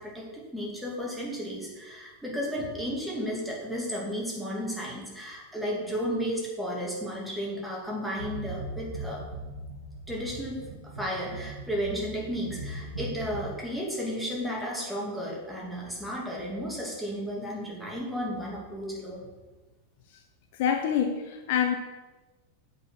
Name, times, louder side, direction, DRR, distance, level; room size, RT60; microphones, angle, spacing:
voice 1, 0.0-9.2 10.1-19.3, equal, ahead, -4 dB, 2.5 m, -33 dB
sound 1, 8.2-13.4, right 1 dB, 70° right, 1.6 m, -39 dB
voice 2, 20.6-21.7, left 8 dB, 50° left, 6 dB, 0.6 m, -26 dB
7.7 x 4.9 x 6.0 m, 1.2 s
figure-of-eight pair, 90°, 0 cm